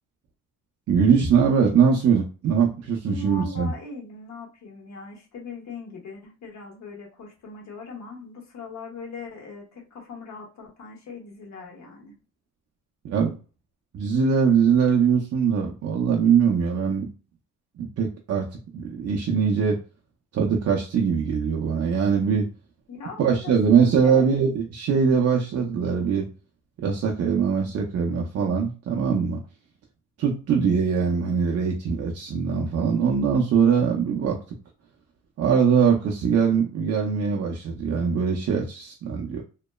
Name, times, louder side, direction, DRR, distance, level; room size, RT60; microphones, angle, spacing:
voice 1, 0.9-3.7 13.0-13.3 13.9-17.1 17.8-18.5 18.7-19.8 20.3-22.5 23.2-26.3 26.8-29.4 30.2-34.4 35.4-39.4, right 6 dB, 55° right, 0 dB, 0.6 m, -22 dB
voice 2, 3.1-12.1 22.9-24.4, left 3 dB, 65° left, 0 dB, 1.2 m, -40 dB
2.9 x 2.0 x 2.2 m, 0.35 s
cardioid pair, 90°, 30 cm